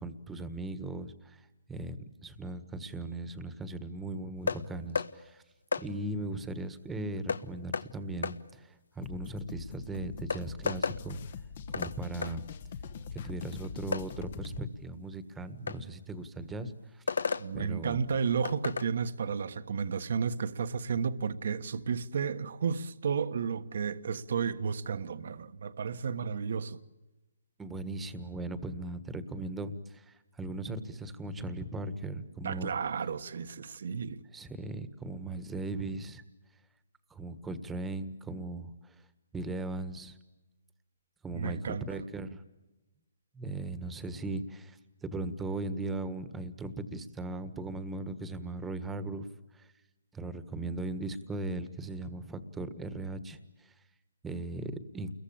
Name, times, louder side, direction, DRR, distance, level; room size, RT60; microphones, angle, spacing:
voice 1, 0.0-5.4 5.8-11.2 11.7-12.4 13.1-17.0 17.5-18.0 27.6-32.7 34.3-36.2 37.1-38.9 39.3-40.2 41.2-42.4 43.3-49.3 49.5-49.7 50.1-53.7 54.2-55.1, right 2 dB, 5° right, 1.5 m, -38 dB
sound 1, 4.5-4.6 5.0-5.1 5.7-5.9 7.3-7.4 7.7-7.9 8.2-8.4 9.7-9.8 10.3-11.0 11.7-12.0 12.2-12.3 13.9-14.1 15.7-15.8 17.1-17.5 18.4-18.9, left 5 dB, 80° left, 1.3 m, -31 dB
sound 2, 9.0-14.6, left 5 dB, 45° left, 1.3 m, -43 dB
voice 2, 17.4-26.8 32.4-34.2 41.3-42.0, right 6 dB, 60° right, 1.4 m, -32 dB
29.5 x 22.5 x 8.8 m
hypercardioid pair, 160°, 0 cm